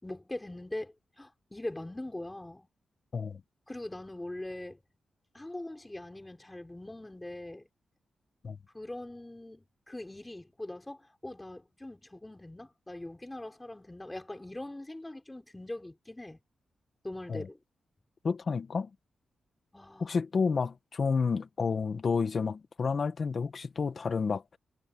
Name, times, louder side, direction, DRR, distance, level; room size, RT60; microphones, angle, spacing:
voice 1, 0.0-2.7 3.7-4.8 5.3-7.7 8.7-16.4 17.0-17.6 19.7-20.2, left 1 dB, 10° left, 5.6 m, -42 dB
voice 2, 18.2-18.9 20.0-24.6, left 5 dB, 40° left, 1.1 m, -30 dB
wide cardioid pair, 160°, 0 cm